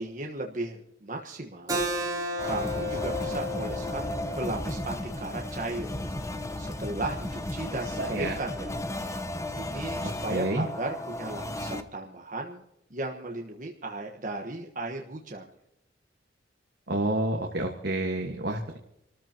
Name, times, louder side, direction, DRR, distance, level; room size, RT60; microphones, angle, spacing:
voice 1, 0.0-1.9 2.4-5.9 6.6-8.8 9.5-12.6 12.9-15.4, right 2 dB, 45° right, 1 dB, 1.3 m, -36 dB
Keyboard (musical), 1.7-6.9, left 1 dB, 20° right, 3.6 m, -34 dB
sound 1, 2.4-11.8, left 1 dB, 15° left, 0.9 m, -34 dB
voice 2, 8.0-8.3 10.3-10.6 16.9-18.8, right 1 dB, 60° right, 2 dB, 1.6 m, -29 dB
27.0 x 14.0 x 2.9 m, 0.81 s
head